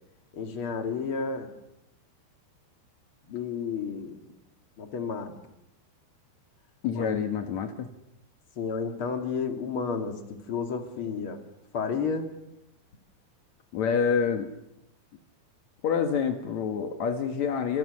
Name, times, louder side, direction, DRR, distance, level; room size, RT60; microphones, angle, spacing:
voice 1, 0.3-1.5 3.3-4.2 4.8-5.4 6.9-7.2 8.6-10.2 10.5-11.4 11.7-12.3, left 5 dB, 40° left, 4 dB, 2.1 m, -31 dB
voice 2, 6.8-7.9 13.7-14.5 15.8-17.8, left 6 dB, 85° left, 5 dB, 1.6 m, -27 dB
29.0 x 27.0 x 6.4 m, 0.88 s
omnidirectional pair, 5.6 m